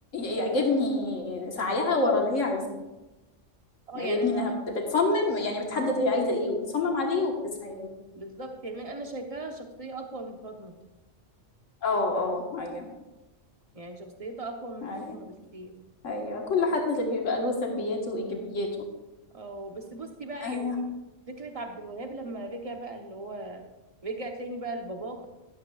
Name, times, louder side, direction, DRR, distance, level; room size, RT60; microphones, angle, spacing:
voice 1, 0.1-2.8 3.9-4.5 4.9-7.9 11.8-12.8 14.8-15.2 16.0-18.7 20.4-20.8, left 3 dB, 90° left, 1 dB, 1.8 m, -27 dB
voice 2, 3.9-4.5 8.1-10.7 13.7-15.7 19.3-20.8 21.3-23.6 24.0-25.3, right 2 dB, 30° right, 3 dB, 1.1 m, -38 dB
12.0 x 11.5 x 2.4 m, 1.1 s
omnidirectional pair, 1.3 m